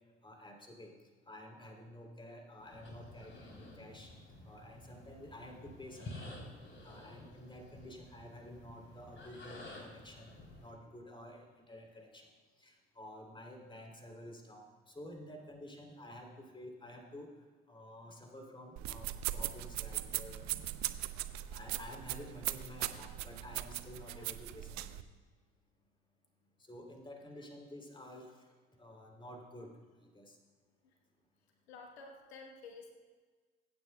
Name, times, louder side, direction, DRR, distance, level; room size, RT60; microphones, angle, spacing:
voice 1, 0.2-0.9 1.3-4.1 4.4-6.4 6.8-10.3 10.6-12.3 12.6-17.3 17.7-20.5 21.5-25.0 26.6-28.5 28.8-29.7 30.0-30.4, left 1 dB, 15° left, 1 dB, 3.0 m, -51 dB
sound 1, 2.6-10.7, left 1 dB, 40° left, 3.3 m, -51 dB
sound 2, 18.8-25.0, right 14 dB, 60° right, 0.6 m, -39 dB
voice 2, 31.7-32.9, left 4 dB, 85° left, 2 dB, 1.2 m, -51 dB
23.0 x 9.4 x 2.2 m, 1.4 s
hypercardioid pair, 65°, 31 cm